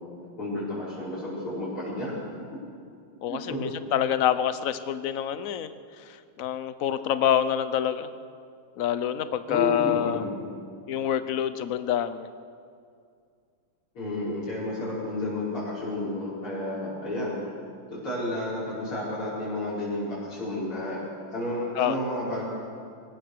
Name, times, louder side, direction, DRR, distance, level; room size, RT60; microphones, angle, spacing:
voice 1, 0.2-2.1 3.3-3.6 9.5-10.4 13.9-17.4 17.9-21.0 21.3-22.4, left 1 dB, 85° left, -11 dB, 6.4 m, -31 dB
voice 2, 3.2-5.7 6.4-8.1 8.8-10.2 10.9-12.3 21.8-22.0, left 10 dB, 60° left, 12 dB, 0.9 m, -26 dB
23.0 x 19.5 x 6.6 m, 2.3 s
omnidirectional pair, 2.3 m